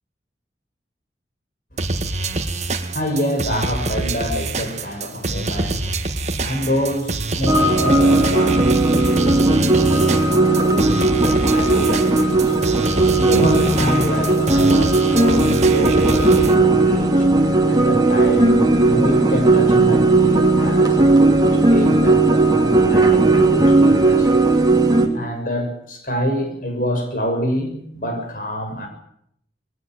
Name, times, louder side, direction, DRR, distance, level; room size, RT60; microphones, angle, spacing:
voice 1, 1.7-2.2 2.6-12.6 13.1-17.3 17.7-24.4 25.1-28.9, equal, 50° left, 4 dB, 6.8 m, -27 dB
sound 1, 1.8-16.5, right 2 dB, 40° right, 1.8 m, -25 dB
sound 2, 7.5-25.1, right 2 dB, 25° right, 2.9 m, -16 dB
22.0 x 17.0 x 9.3 m, 0.71 s
head